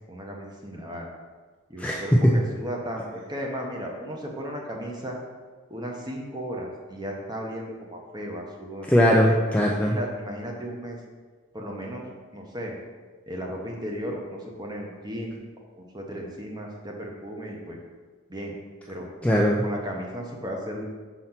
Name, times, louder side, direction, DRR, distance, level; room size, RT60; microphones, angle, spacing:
voice 1, 0.1-1.1 1.7-5.2 5.7-8.9 9.2-9.3 9.8-11.0 11.5-12.0 12.3-12.7 13.3-15.4 15.8-17.8 18.3-18.5 18.9-19.1 19.6-20.8, equal, 20° right, 0 dB, 1.0 m, -35 dB
voice 2, 1.8-2.4 8.9-9.9 19.2-19.6, equal, 5° left, -2 dB, 0.4 m, -20 dB
5.3 x 4.2 x 5.9 m, 1.4 s
head